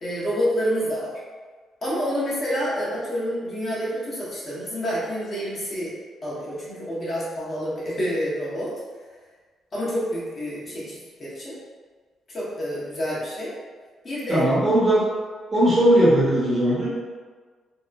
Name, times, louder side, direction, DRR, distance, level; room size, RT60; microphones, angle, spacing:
voice 1, 0.0-1.1 1.8-5.9 6.2-8.7 9.7-11.6 12.3-13.5 14.0-14.5, equal, 40° left, -8 dB, 1.0 m, -28 dB
voice 2, 14.3-15.1 15.5-16.9, right 1 dB, 30° right, -7 dB, 0.9 m, -18 dB
2.9 x 2.1 x 2.4 m, 1.5 s
cardioid pair, 90°, 0 cm